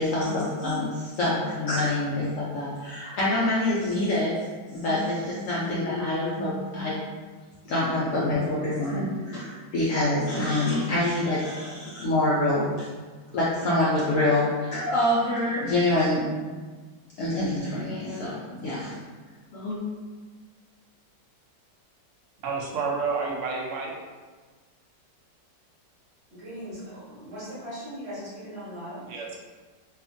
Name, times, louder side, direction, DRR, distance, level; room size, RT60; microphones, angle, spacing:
voice 1, 0.0-4.4 4.7-7.1 7.6-12.9 13.3-16.3 17.2-19.0 19.5-19.8, left 1 dB, 75° left, -7 dB, 0.7 m, -26 dB
voice 2, 22.4-23.9 29.1-29.4, right 4 dB, 85° right, -1 dB, 0.6 m, -29 dB
voice 3, 26.3-29.2, equal, 50° right, -9 dB, 0.9 m, -39 dB
2.8 x 2.4 x 2.5 m, 1.4 s
omnidirectional pair, 1.9 m